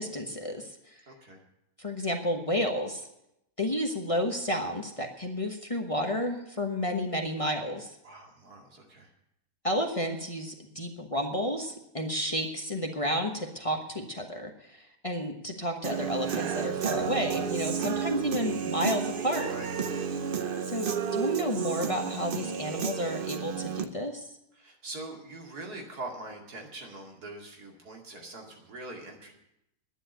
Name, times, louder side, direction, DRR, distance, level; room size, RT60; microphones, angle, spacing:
voice 1, 0.0-0.9 1.8-3.1 3.6-7.9 9.6-19.5 20.7-24.3, equal, 25° left, 2 dB, 1.1 m, -31 dB
voice 2, 1.1-1.4 8.0-9.1 19.5-20.0 24.5-29.3, right 2 dB, 85° right, 1 dB, 2.9 m, -43 dB
Human voice / Guitar, 15.8-23.8, right 7 dB, 45° right, 0.8 m, -31 dB
10.5 x 10.0 x 9.0 m, 0.85 s
omnidirectional pair, 1.6 m